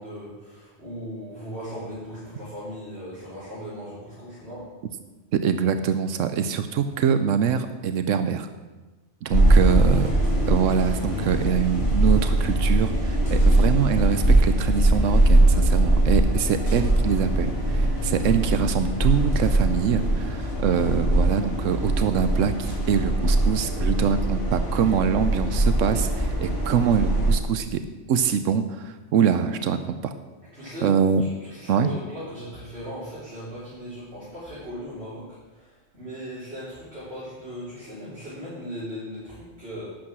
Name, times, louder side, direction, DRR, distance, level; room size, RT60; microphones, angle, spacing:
voice 1, 0.0-4.7 30.5-30.9 31.2-39.9, equal, 55° right, -11 dB, 4.3 m, -38 dB
voice 2, 5.3-8.5 9.2-10.1 10.5-27.8 28.1-30.1 30.8-31.2 31.7-31.9, right 7 dB, 90° right, 10 dB, 1.1 m, -24 dB
sound 1, 9.3-27.3, right 1 dB, 55° left, 4.2 m, -21 dB
11.5 x 8.9 x 6.2 m, 1.2 s
omnidirectional pair, 1.3 m